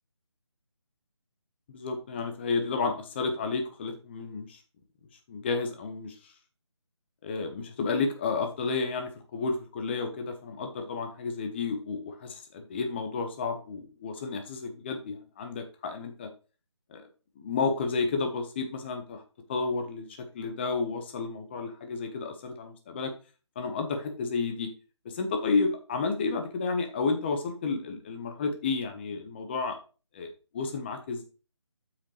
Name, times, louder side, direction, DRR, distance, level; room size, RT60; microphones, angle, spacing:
voice 1, 1.7-4.6 5.3-6.1 7.2-16.3 16.9-17.0 17.4-19.2 19.5-23.1 23.5-24.7 25.0-29.8 30.1-30.3 30.5-31.2, left 4 dB, 20° left, 5 dB, 1.0 m, -31 dB
8.2 x 6.1 x 3.2 m, 0.35 s
figure-of-eight pair, 160°, 16 cm